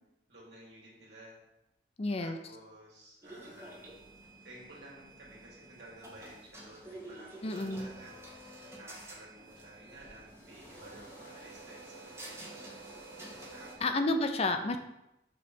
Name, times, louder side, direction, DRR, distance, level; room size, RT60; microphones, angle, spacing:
voice 1, 0.3-1.4 2.2-4.0 4.4-12.5 13.5-14.2, right 1 dB, 80° right, -5 dB, 2.4 m, -53 dB
voice 2, 2.0-2.4 7.4-7.9 13.8-14.8, left 2 dB, 35° left, 7 dB, 0.5 m, -30 dB
sound 1, 3.2-13.7, right 1 dB, 15° right, 1.4 m, -49 dB
6.8 x 3.2 x 5.1 m, 0.89 s
head